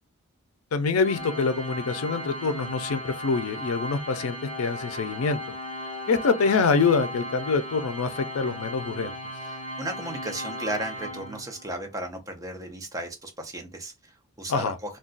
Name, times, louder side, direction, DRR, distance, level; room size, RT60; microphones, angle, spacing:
voice 1, 0.7-5.6 6.1-9.1 14.5-14.7, left 4 dB, 80° left, 0.5 m, -25 dB
Organ, 1.0-11.8, equal, 35° left, 1.2 m, -37 dB
voice 2, 9.4-15.0, right 1 dB, 15° right, 0.7 m, -35 dB
2.4 x 2.2 x 3.8 m
head